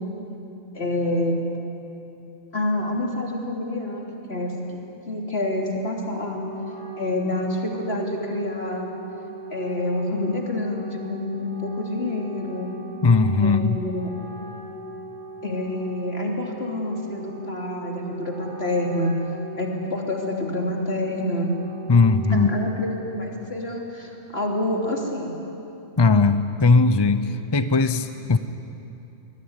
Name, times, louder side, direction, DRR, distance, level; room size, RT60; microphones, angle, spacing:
voice 1, 0.7-1.5 2.5-4.0 4.3-4.8 5.1-6.4 7.0-8.9 9.5-12.7 13.4-14.1 15.4-19.1 19.6-21.5 22.3-25.4, left 1 dB, 60° left, 0 dB, 3.6 m, -27 dB
Wind instrument woodwind instrument, 5.9-23.4, right 2 dB, 40° right, 2.2 m, -39 dB
voice 2, 13.0-13.8 21.9-22.5 26.0-28.4, left 4 dB, 25° left, 10 dB, 0.6 m, -18 dB
25.5 x 20.5 x 9.7 m, 2.9 s
omnidirectional pair, 1.2 m